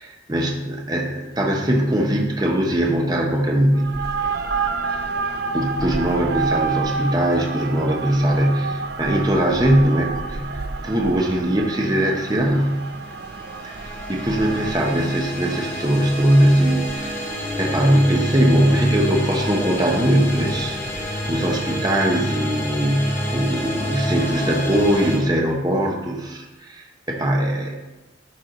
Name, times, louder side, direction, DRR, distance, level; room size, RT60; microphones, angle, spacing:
voice 1, 0.0-4.0 4.9-5.0 5.5-12.8 13.6-27.7, right 1 dB, 20° right, 0 dB, 1.0 m, -21 dB
sound 1, 3.7-21.6, right 4 dB, 55° right, 0.5 m, -31 dB
sound 2, 12.9-25.2, equal, 10° left, 1.4 m, -28 dB
12.5 x 4.6 x 3.9 m, 1.1 s
head